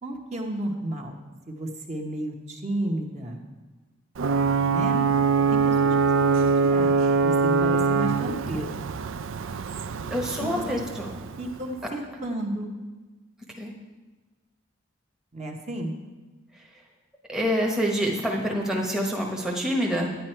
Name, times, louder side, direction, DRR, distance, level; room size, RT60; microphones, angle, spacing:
voice 1, 0.0-1.2 1.5-3.4 4.7-5.0 5.5-7.0 7.2-8.7 10.4-10.6 11.4-12.7 15.3-15.9, right 1 dB, 35° right, 1 dB, 1.1 m, -32 dB
Ocean / Boat Water vehicle / Alarm, 4.2-11.7, right 4 dB, 70° right, 0.4 m, -23 dB
voice 2, 10.1-11.1 13.6-13.7 17.3-20.2, equal, 5° right, -1 dB, 0.9 m, -26 dB
9.8 x 9.4 x 4.5 m, 1.3 s
head